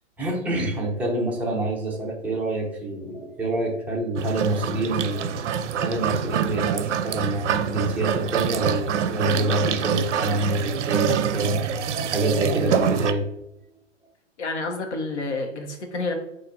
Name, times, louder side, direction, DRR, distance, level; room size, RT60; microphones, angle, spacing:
voice 1, 0.2-5.3 5.8-13.3, right 1 dB, 5° right, -3 dB, 0.6 m, -26 dB
sound 1, 4.2-13.1, right 8 dB, 65° right, 0.5 m, -26 dB
voice 2, 14.4-16.1, left 3 dB, 65° left, 3 dB, 1.3 m, -29 dB
4.3 x 2.7 x 4.0 m, 0.82 s
hypercardioid pair, 130°, 38 cm